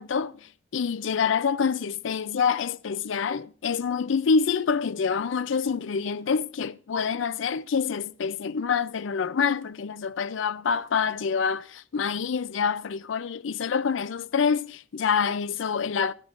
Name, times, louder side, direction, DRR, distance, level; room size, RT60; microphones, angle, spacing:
voice 1, 0.0-16.1, left 6 dB, 75° left, 0.4 m, -26 dB
15.5 x 11.0 x 2.5 m
head